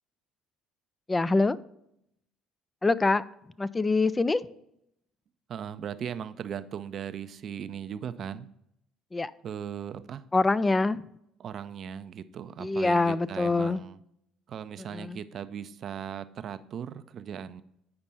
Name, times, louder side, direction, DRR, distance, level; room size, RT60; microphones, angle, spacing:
voice 1, 1.1-1.6 2.8-3.2 3.6-4.4 9.1-9.3 10.3-11.0 12.6-13.8 14.9-15.2, left 3 dB, 20° left, 16 dB, 0.4 m, -24 dB
voice 2, 5.5-8.5 9.4-10.2 11.4-14.0 14.5-17.6, right 8 dB, 50° right, 12 dB, 0.5 m, -38 dB
8.6 x 5.2 x 4.1 m, 0.76 s
hypercardioid pair, 60°, 0 cm